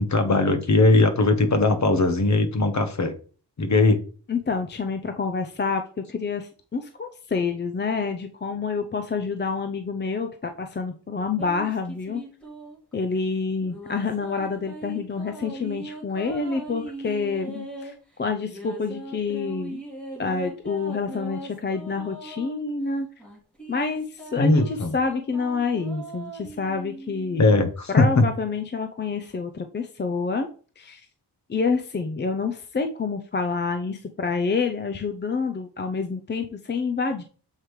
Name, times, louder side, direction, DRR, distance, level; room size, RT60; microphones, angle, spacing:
voice 1, 0.0-3.1 3.6-4.0 24.4-25.0 27.4-28.3, left 2 dB, 45° left, 1.0 m, -19 dB
voice 2, 4.3-12.2 12.9-19.8 20.2-23.1 23.7-27.6 27.9-30.5 30.8-31.1 31.5-37.2, left 4 dB, 25° left, 0.5 m, -28 dB
sound 1, 11.4-12.9 13.6-17.9 18.4-22.6 23.2-27.4, right 1 dB, 5° left, 2.3 m, -39 dB
7.4 x 4.9 x 3.1 m
wide cardioid pair, 135°, 41 cm